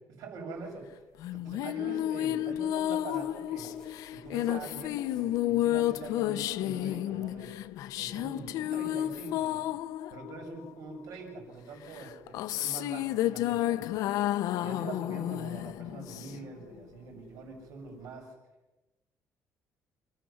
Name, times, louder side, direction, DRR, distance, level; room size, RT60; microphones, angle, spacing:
voice 1, 0.2-0.8 1.4-3.7 4.1-7.5 8.0-9.7 10.1-14.0 14.6-18.3, right 4 dB, 75° right, 1 dB, 7.3 m, -44 dB
sound 1, 1.2-11.1 11.9-16.6, left 13 dB, 85° left, 0.7 m, -31 dB
sound 2, 2.9-8.1, left 1 dB, 10° left, 4.8 m, -53 dB
28.0 x 14.5 x 7.2 m, 1.1 s
cardioid pair, 155°, 6 cm